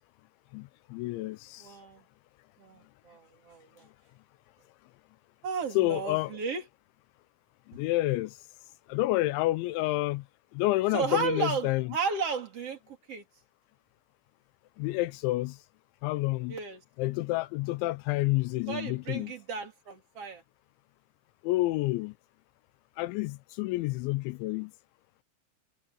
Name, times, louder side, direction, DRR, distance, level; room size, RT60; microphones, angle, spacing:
voice 1, 0.5-1.7 5.7-6.4 7.7-8.4 8.9-10.3 10.5-11.9 14.8-15.6 16.0-16.6 17.0-19.3 21.4-22.1 23.0-24.7, left 18 dB, 85° left, 2.8 m, -29 dB
voice 2, 1.6-2.0 2.6-3.9 5.4-6.6 10.9-13.2 16.5-16.8 18.7-20.4, right 5 dB, 35° right, 3.3 m, -34 dB
omnidirectional pair, 5.6 m